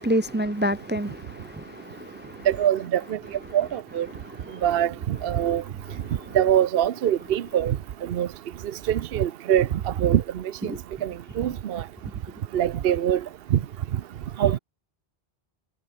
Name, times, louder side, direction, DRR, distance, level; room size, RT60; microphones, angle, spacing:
voice 1, 0.0-2.4 4.5-4.6 6.1-6.2 10.7-10.8, equal, 10° right, 0.6 m, -28 dB
voice 2, 2.5-3.2 3.5-4.1 4.6-5.6 6.3-7.8 8.1-8.3 8.9-9.7 10.0-10.2 10.6-10.7 11.0-11.8 12.5-13.2 13.5-13.6 14.4-14.6, right 10 dB, 70° right, 0.8 m, -23 dB
omnidirectional pair, 1.0 m